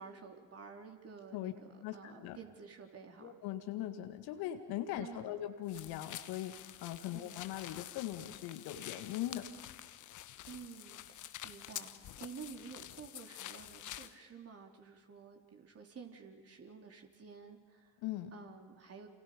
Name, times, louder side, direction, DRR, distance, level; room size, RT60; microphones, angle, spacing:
voice 1, 0.0-3.4 5.0-5.5 7.1-7.4 10.5-18.0 18.3-19.1, right 5 dB, 35° right, 3 dB, 4.1 m, -51 dB
voice 2, 1.8-2.4 3.2-9.5 18.0-18.3, left 12 dB, 60° left, 7 dB, 2.1 m, -40 dB
sound 1, 5.7-14.1, left 12 dB, 45° left, 1.2 m, -48 dB
29.0 x 28.5 x 5.3 m, 1.5 s
figure-of-eight pair, 60°, 41 cm